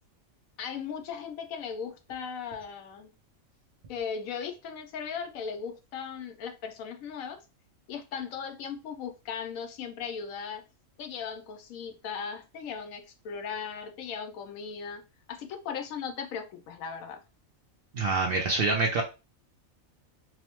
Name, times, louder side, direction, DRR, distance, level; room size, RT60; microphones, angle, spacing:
voice 1, 0.6-3.1 3.9-7.4 7.9-10.6 11.0-15.0 15.3-17.2, left 6 dB, 80° left, 1.0 m, -37 dB
voice 2, 17.9-19.0, right 3 dB, 65° right, 0.6 m, -26 dB
3.0 x 2.0 x 2.9 m
omnidirectional pair, 1.4 m